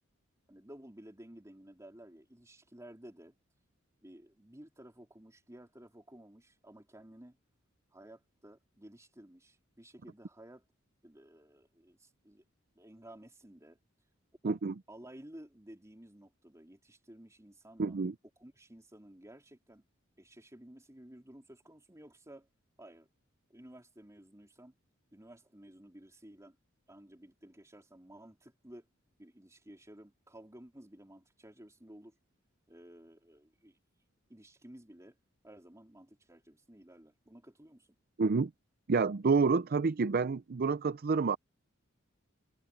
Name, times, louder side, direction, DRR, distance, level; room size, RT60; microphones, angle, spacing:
voice 1, 0.5-3.3 4.0-7.4 7.9-10.6 11.0-12.4 12.8-13.8 14.4-14.6 14.9-18.0 18.4-19.8 20.2-22.5 22.8-23.1 23.5-24.7 25.1-26.6 26.9-28.9 29.2-32.2 32.7-33.8 34.3-35.2 35.4-38.0, right 1 dB, 15° right, 3.9 m, -54 dB
voice 2, 14.4-14.7 17.8-18.1 38.2-38.5 38.9-41.4, right 4 dB, 45° right, 0.5 m, -28 dB
head